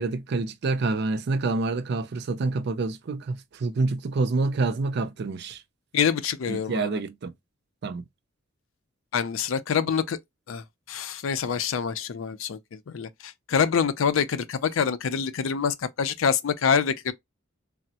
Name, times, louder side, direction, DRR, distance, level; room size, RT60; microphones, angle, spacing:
voice 1, 0.0-5.6 6.5-7.3 7.8-8.0, right 3 dB, 55° right, 0.4 m, -27 dB
voice 2, 5.9-7.0 9.1-10.2 10.5-17.1, left 6 dB, 75° left, 0.4 m, -26 dB
3.4 x 2.0 x 2.7 m
head